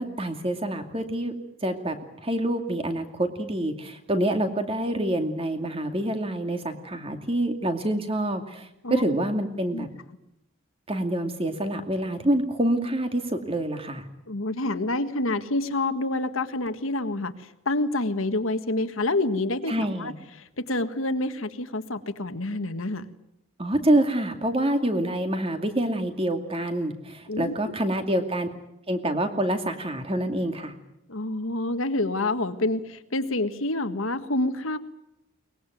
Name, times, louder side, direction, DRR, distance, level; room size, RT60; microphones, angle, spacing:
voice 1, 0.0-1.3 1.6-1.9 2.2-9.9 10.9-14.1 19.7-20.1 23.6-28.5 28.9-30.7, right 1 dB, 25° right, 6 dB, 2.4 m, -26 dB
voice 2, 14.3-17.3 17.6-20.1 20.6-23.0 27.3-27.7 31.1-34.8, left 2 dB, 75° left, 10 dB, 1.6 m, -27 dB
23.0 x 20.5 x 9.3 m, 0.85 s
head